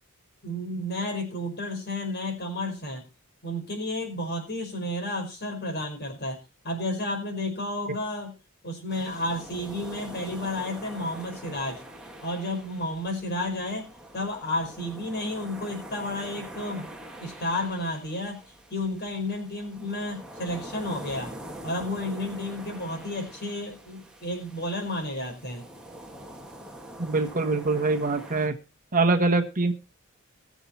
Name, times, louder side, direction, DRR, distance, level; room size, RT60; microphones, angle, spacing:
voice 1, 0.4-3.0 3.4-8.4 8.6-11.8 12.2-16.9 17.2-18.4 18.7-21.3 21.6-25.7, left 1 dB, 45° left, 4 dB, 4.9 m, -32 dB
sound 1, 8.9-28.5, right 1 dB, 5° right, 2.0 m, -44 dB
voice 2, 27.0-28.5 28.9-29.7, right 3 dB, 40° right, 5 dB, 1.3 m, -24 dB
20.5 x 7.2 x 4.3 m, 0.30 s
head